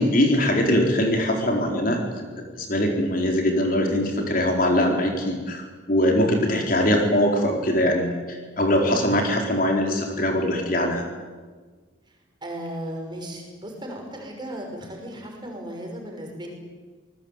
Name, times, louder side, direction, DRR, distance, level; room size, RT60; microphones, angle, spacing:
voice 1, 0.0-2.0 2.6-11.0, left 1 dB, 45° left, 2 dB, 4.4 m, -22 dB
voice 2, 12.4-16.5, right 1 dB, 25° right, 1 dB, 6.2 m, -35 dB
27.5 x 20.0 x 9.1 m, 1.4 s
head